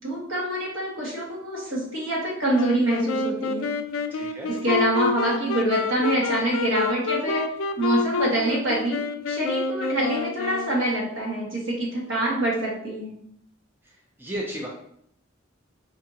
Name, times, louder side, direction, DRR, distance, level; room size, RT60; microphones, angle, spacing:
voice 1, 0.0-3.7 4.5-7.5 7.8-9.0 9.3-13.2, right 1 dB, 70° right, -3 dB, 1.4 m, -25 dB
Wind instrument woodwind instrument, 2.5-11.3, left 4 dB, 80° left, 0.3 m, -28 dB
voice 2, 4.1-4.5 14.2-14.7, equal, 10° right, -2 dB, 0.4 m, -33 dB
4.5 x 2.5 x 2.7 m, 0.68 s
head